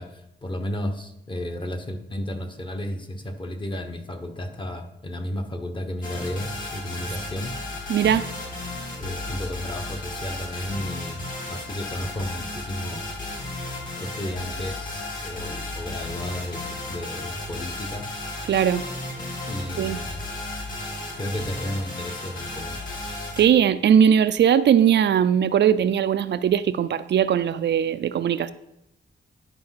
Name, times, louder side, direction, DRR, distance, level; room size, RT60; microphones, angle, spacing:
voice 1, 0.0-7.5 9.0-13.3 14.0-16.6 16.9-18.1 19.5-20.2 21.2-22.8, left 1 dB, 25° left, 1.0 m, -33 dB
sound 1, 6.0-23.4, left 2 dB, 45° left, 2.9 m, -34 dB
voice 2, 7.9-8.2 18.5-18.8 19.8-20.0 23.4-28.5, right 9 dB, 65° right, 0.4 m, -19 dB
10.5 x 5.0 x 5.7 m
wide cardioid pair, 160°, 20 cm